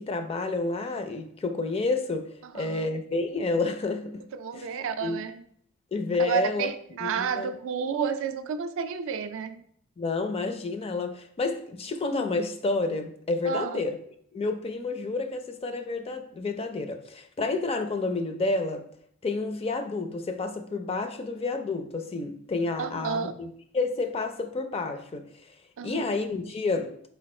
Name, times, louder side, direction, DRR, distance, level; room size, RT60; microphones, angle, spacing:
voice 1, 0.0-4.2 4.5-5.2 5.9-6.7 7.0-7.5 10.0-14.0 14.3-18.8 19.2-25.3 25.8-26.9, left 3 dB, 30° left, 0.4 m, -30 dB
voice 2, 2.4-2.9 4.3-5.4 6.2-9.6 13.5-13.8 22.8-23.3 25.8-26.1, right 6 dB, 65° right, 0.3 m, -31 dB
4.4 x 2.3 x 4.2 m
head